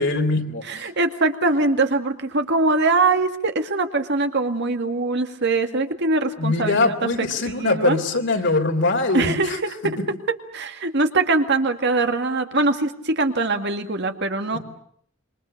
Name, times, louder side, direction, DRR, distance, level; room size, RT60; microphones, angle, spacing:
voice 1, 0.0-0.9 6.4-9.6 14.5-14.6, left 2 dB, 65° left, 5 dB, 3.4 m, -22 dB
voice 2, 0.7-8.0 9.1-9.7 10.5-14.6, right 3 dB, 60° right, 6 dB, 2.2 m, -22 dB
27.0 x 24.5 x 6.7 m, 0.64 s
head